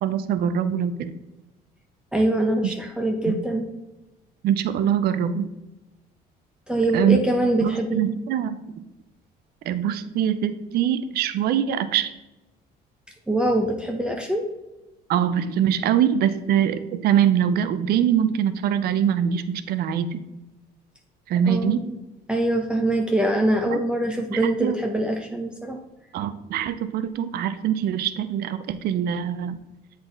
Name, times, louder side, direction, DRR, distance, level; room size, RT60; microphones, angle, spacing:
voice 1, 0.0-1.2 2.6-2.7 3.3-3.4 4.4-5.5 6.9-7.2 7.6-8.6 9.6-12.1 15.1-20.2 21.3-21.8 23.7-23.8 24.3-24.7 26.1-29.6, right 9 dB, 70° right, 11 dB, 0.5 m, -23 dB
voice 2, 2.1-3.7 6.7-8.1 13.3-14.5 21.5-21.9 22.3-25.8, right 1 dB, 5° right, 2 dB, 0.6 m, -24 dB
7.9 x 4.1 x 3.8 m, 1.0 s
cardioid pair, 110°, 17 cm